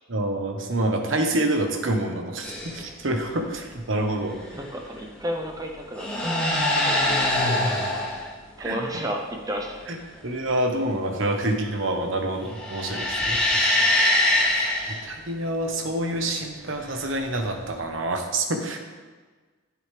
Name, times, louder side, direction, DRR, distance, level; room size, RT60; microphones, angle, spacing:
voice 1, 0.1-4.4 8.6-8.8 9.9-10.0 10.2-14.1 14.5-18.8, right 1 dB, 65° right, 4 dB, 1.2 m, -27 dB
sound 1, 2.4-2.9 4.4-4.8 5.8-8.3 12.4-15.0 16.9-17.7, left 1 dB, 5° left, 2.8 m, -23 dB
voice 2, 4.5-6.4 6.8-8.1 8.6-9.8, equal, 15° right, 2 dB, 0.8 m, -33 dB
10.5 x 8.9 x 3.4 m, 1.4 s
head